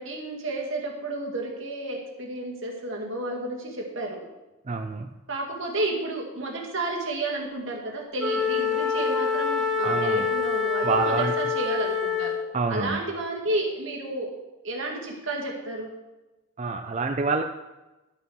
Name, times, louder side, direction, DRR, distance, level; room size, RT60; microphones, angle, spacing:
voice 1, 0.0-4.2 5.3-12.4 12.7-14.3 14.6-15.9, right 2 dB, 65° right, -1 dB, 2.1 m, -31 dB
voice 2, 4.7-5.1 9.8-10.3 10.8-11.3 12.5-13.0 16.6-17.4, right 4 dB, 35° right, 5 dB, 0.4 m, -27 dB
Wind instrument woodwind instrument, 8.2-12.5, left 5 dB, ahead, 1.3 m, -26 dB
11.5 x 5.7 x 6.1 m, 1.1 s
head